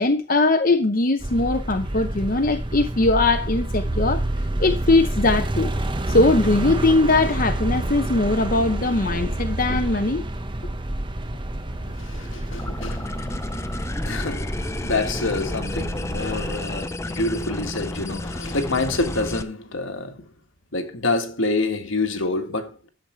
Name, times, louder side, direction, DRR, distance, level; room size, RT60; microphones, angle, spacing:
voice 1, 0.0-4.2 4.6-5.7 6.1-10.2, left 2 dB, 45° left, 0.8 m, -20 dB
sound 1, 1.2-16.6, right 1 dB, 25° right, 0.9 m, -28 dB
voice 2, 11.8-13.1 13.6-13.8 14.0-20.3 20.7-22.9, left 2 dB, 70° left, 1.7 m, -27 dB
sound 2, 12.6-19.4, left 1 dB, 15° left, 0.5 m, -31 dB
11.5 x 7.3 x 4.5 m
head